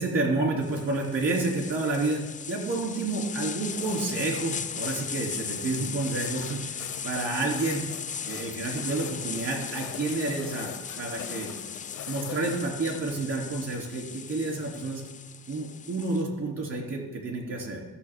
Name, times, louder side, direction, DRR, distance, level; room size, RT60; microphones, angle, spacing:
voice 1, 0.0-2.2 2.5-7.9 8.2-11.5 12.1-15.0 15.5-17.8, right 3 dB, 55° right, 0 dB, 2.9 m, -30 dB
sound 1, 0.6-16.2, left 7 dB, 25° left, 0.3 m, -38 dB
sound 2, 3.7-12.7, left 9 dB, 75° left, 0.7 m, -43 dB
13.0 x 6.3 x 3.6 m, 1.2 s
cardioid pair, 90°, 30 cm